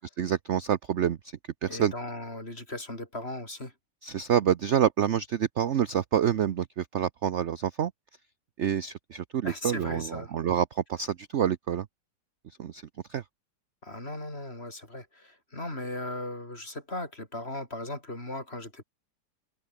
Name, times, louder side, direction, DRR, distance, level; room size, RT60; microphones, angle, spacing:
voice 1, 0.2-1.2 1.6-1.9 4.0-7.9 8.6-11.9 12.4-12.8 13.1-13.2, right 9 dB, 60° right, 0.7 m, -27 dB
voice 2, 1.7-3.7 9.4-10.3 13.8-18.8, left 1 dB, 30° left, 6.1 m, -37 dB
open air
omnidirectional pair, 2.0 m